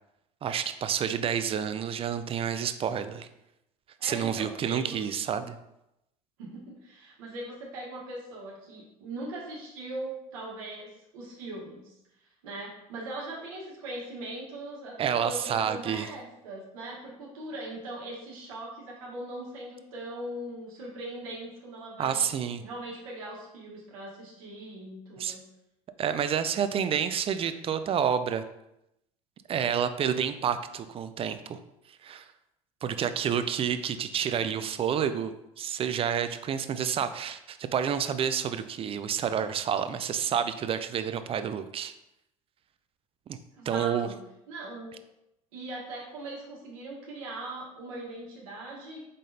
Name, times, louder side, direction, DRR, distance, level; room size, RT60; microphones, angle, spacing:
voice 1, 0.4-3.3 4.0-5.6 15.0-16.1 22.0-22.6 25.2-25.4 26.0-28.4 29.5-31.6 32.0-32.2 32.8-41.9 43.3-43.4 43.7-44.1, right 8 dB, 30° right, 11 dB, 0.4 m, -29 dB
voice 2, 4.0-5.2 6.4-11.9 12.4-22.2 22.6-25.4 43.5-45.0 45.5-49.1, right 2 dB, 80° right, -4 dB, 1.3 m, -40 dB
5.0 x 3.7 x 2.7 m, 0.86 s
hypercardioid pair, 75°, 18 cm